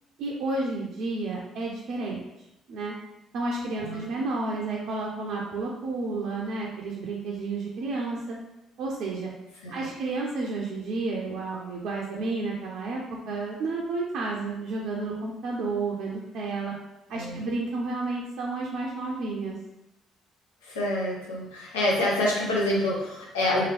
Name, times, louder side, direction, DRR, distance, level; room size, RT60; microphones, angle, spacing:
voice 1, 0.2-2.2 2.7-3.0 3.3-8.4 8.8-9.3 9.7-16.7 17.1-19.6, right 3 dB, 65° right, -3 dB, 0.4 m, -31 dB
voice 2, 20.6-23.7, left 1 dB, 85° left, -4 dB, 0.7 m, -27 dB
2.9 x 2.6 x 2.9 m, 0.91 s
hypercardioid pair, 50°, 0 cm